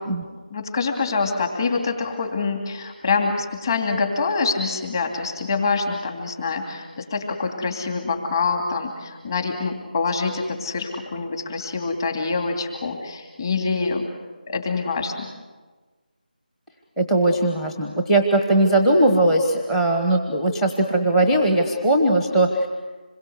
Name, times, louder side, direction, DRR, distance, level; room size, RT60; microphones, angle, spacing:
voice 1, 0.5-14.1 14.5-15.3, left 4 dB, 25° left, 3 dB, 2.9 m, -25 dB
voice 2, 17.0-22.7, right 1 dB, 5° left, 5 dB, 1.0 m, -19 dB
26.5 x 22.0 x 8.1 m, 1.3 s
figure-of-eight pair, 170°, 5 cm